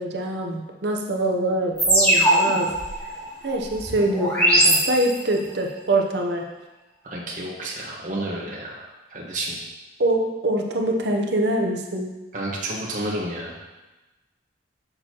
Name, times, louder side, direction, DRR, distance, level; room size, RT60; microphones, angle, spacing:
voice 1, 0.0-2.7 3.4-6.4 10.0-12.1, right 1 dB, 70° right, 1 dB, 0.9 m, -24 dB
sound 1, 1.8-5.4, right 1 dB, 10° left, 1.9 m, -21 dB
voice 2, 7.0-8.8 9.1-9.6 12.3-13.5, right 1 dB, 45° right, -3 dB, 1.3 m, -30 dB
6.5 x 6.3 x 3.0 m, 1.1 s
head